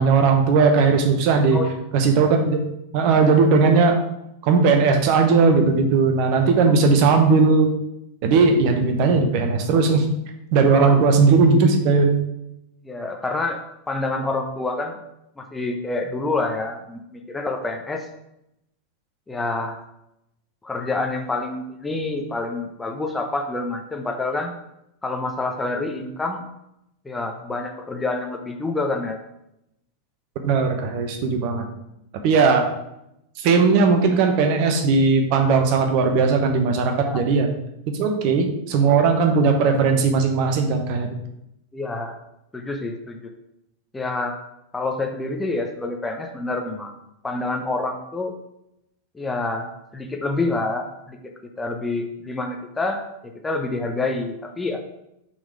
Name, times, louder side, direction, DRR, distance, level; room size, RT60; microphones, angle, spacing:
voice 1, 0.0-1.6 1.9-2.6 2.9-4.0 4.4-7.7 8.2-10.0 10.5-12.1 30.4-31.6 32.2-32.7 33.4-37.5 38.0-41.1, right 4 dB, 45° right, 4 dB, 1.0 m, -18 dB
voice 2, 10.7-11.1 12.8-13.6 13.9-15.0 15.4-18.1 19.3-19.8 20.6-24.5 25.0-26.4 27.0-29.2 37.0-37.2 41.7-42.2 42.5-43.3 43.9-44.4 44.7-46.9 47.2-48.3 49.1-51.2 51.6-53.0 53.4-54.8, left 2 dB, 10° left, 3 dB, 0.8 m, -27 dB
6.0 x 4.1 x 4.8 m, 0.82 s
figure-of-eight pair, 90°, 0 cm